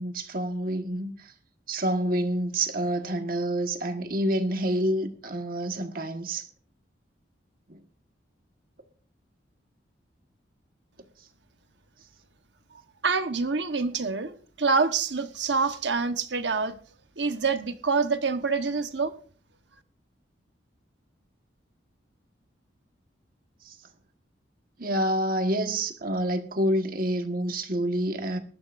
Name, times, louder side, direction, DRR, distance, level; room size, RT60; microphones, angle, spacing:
voice 1, 0.0-1.3 1.7-6.5 7.7-7.8 23.6-23.8 24.8-28.4, right 1 dB, 50° right, 1.5 m, -28 dB
voice 2, 13.0-16.8 17.2-19.1, right 4 dB, 75° right, 1.2 m, -26 dB
20.0 x 13.0 x 2.6 m
head